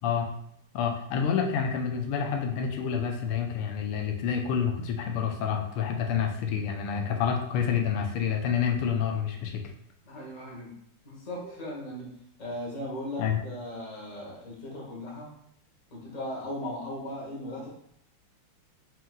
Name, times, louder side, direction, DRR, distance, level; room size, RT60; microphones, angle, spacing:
voice 1, 0.7-9.6 13.2-13.4, left 7 dB, 90° left, 3 dB, 1.5 m, -28 dB
voice 2, 10.0-10.7 11.0-12.1 12.4-15.3 15.9-17.7, left 1 dB, 25° left, -4 dB, 0.9 m, -37 dB
4.5 x 3.6 x 2.4 m, 0.71 s
omnidirectional pair, 2.4 m